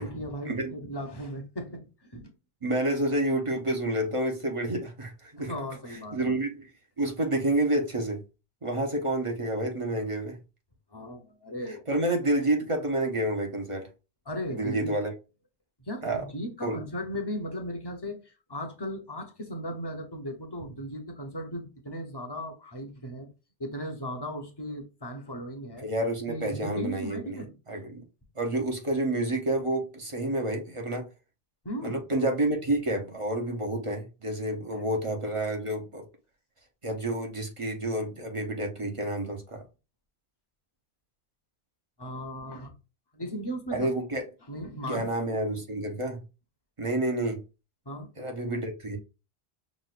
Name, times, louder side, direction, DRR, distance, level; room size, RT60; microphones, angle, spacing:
voice 1, 0.0-2.3 5.4-6.3 10.9-11.8 14.3-14.9 15.8-23.3 23.6-25.9 26.3-27.6 31.6-32.0 34.7-34.8 42.0-42.7 43.1-43.9 44.5-45.1 47.9-48.1, equal, 25° left, 0.9 m, -37 dB
voice 2, 2.6-5.5 6.1-6.7 7.0-8.2 8.6-10.4 11.7-13.8 14.5-15.1 16.0-16.2 16.6-16.8 25.8-27.4 27.7-28.0 28.4-31.1 31.8-36.1 36.8-39.6 43.7-44.3 44.9-46.2 46.8-47.4 48.2-49.0, right 1 dB, 30° right, 1.0 m, -29 dB
6.2 x 2.5 x 2.5 m
omnidirectional pair, 1.1 m